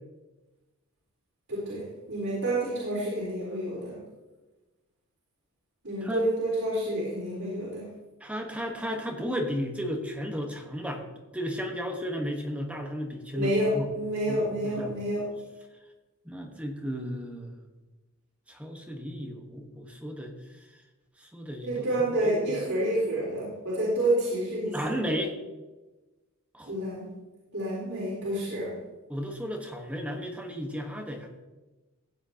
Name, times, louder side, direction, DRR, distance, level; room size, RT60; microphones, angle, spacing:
voice 1, 1.5-4.0 5.8-7.8 13.3-15.3 21.6-24.8 26.7-27.1 27.5-28.7, right 1 dB, 85° right, -7 dB, 4.0 m, -29 dB
voice 2, 8.2-11.0 11.3-13.9 14.3-15.0 16.2-17.6 18.5-20.7 21.2-21.9 22.2-22.6 24.6-25.3 26.5-26.7 29.1-31.3, equal, 5° right, 2 dB, 1.2 m, -34 dB
16.0 x 8.8 x 2.9 m, 1.1 s
head